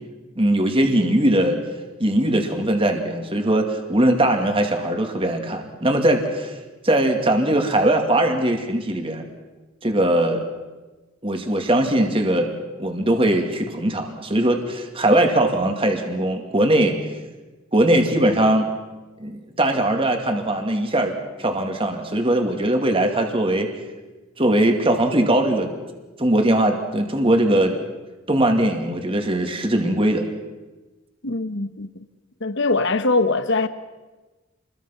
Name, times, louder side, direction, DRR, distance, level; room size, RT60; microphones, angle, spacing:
voice 1, 0.4-1.6 2.0-6.6 6.8-9.2 9.8-10.4 11.2-12.5 12.8-16.9 17.7-18.7 19.2-21.1 21.4-23.7 24.4-25.7 26.2-27.7 28.3-30.2, right 1 dB, 25° right, 2.3 m, -20 dB
voice 2, 31.2-32.0 32.4-33.7, left 3 dB, 55° left, 1.2 m, -22 dB
29.0 x 22.0 x 5.9 m
head